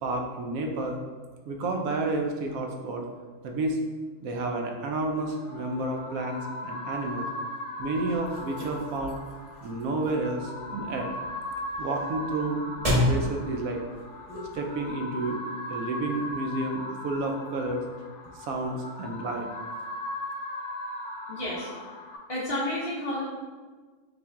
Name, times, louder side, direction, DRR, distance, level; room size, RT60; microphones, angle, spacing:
voice 1, 0.0-1.0 1.5-3.0 3.4-3.8 4.2-7.3 7.8-9.2 9.6-11.1 11.8-13.8 14.5-15.4 15.7-17.8 18.4-19.5, right 2 dB, 80° right, 3 dB, 1.0 m, -30 dB
sound 1, 5.2-22.2, left 1 dB, 65° left, 0.9 m, -38 dB
sound 2, 7.8-14.9, left 1 dB, 30° right, 1.3 m, -33 dB
voice 2, 21.3-21.7 22.3-23.2, left 1 dB, 35° left, -8 dB, 0.6 m, -30 dB
5.1 x 2.5 x 3.5 m, 1.4 s
omnidirectional pair, 1.4 m